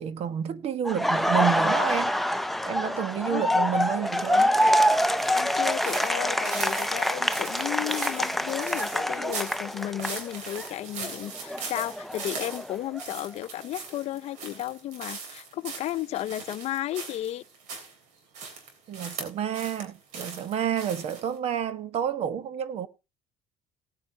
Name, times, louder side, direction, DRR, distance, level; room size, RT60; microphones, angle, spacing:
voice 1, 0.0-2.1 2.6-4.5 18.9-22.9, right 9 dB, 60° right, 1.2 m, -29 dB
Laughter, 0.9-10.7 11.0-13.0, equal, ahead, 0.6 m, -26 dB
voice 2, 5.1-17.4, left 13 dB, 60° left, 0.6 m, -34 dB
sound 1, 5.2-17.9 18.3-19.8 20.1-21.3, right 5 dB, 80° right, 3.5 m, -40 dB
18.0 x 8.9 x 2.8 m
cardioid pair, 100°, 12 cm